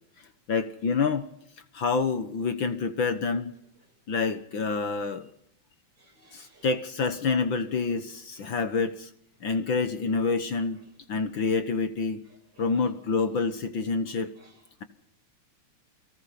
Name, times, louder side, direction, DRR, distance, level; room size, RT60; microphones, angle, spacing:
voice 1, 0.5-1.3 1.7-3.5 4.1-5.3 6.3-9.1 9.4-10.8 11.1-12.2 12.6-14.3, left 4 dB, 55° left, 1.6 m, -27 dB
voice 2, 6.0-6.7 8.4-8.6 9.4-9.5 10.7-10.9 12.2-12.9 14.1-14.7, right 2 dB, 35° right, 6.5 m, -60 dB
29.5 x 18.5 x 5.9 m
omnidirectional pair, 3.4 m